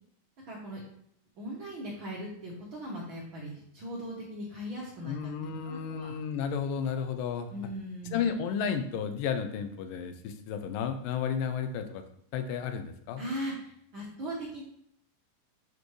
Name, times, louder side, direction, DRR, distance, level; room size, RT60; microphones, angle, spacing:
voice 1, 0.5-0.8 1.4-6.1 7.5-8.2 13.2-14.6, equal, 75° right, -5 dB, 1.1 m, -39 dB
voice 2, 5.0-7.5 8.1-12.0 12.3-13.2, left 7 dB, 80° left, 7 dB, 2.2 m, -32 dB
8.0 x 5.1 x 3.2 m, 0.67 s
omnidirectional pair, 4.1 m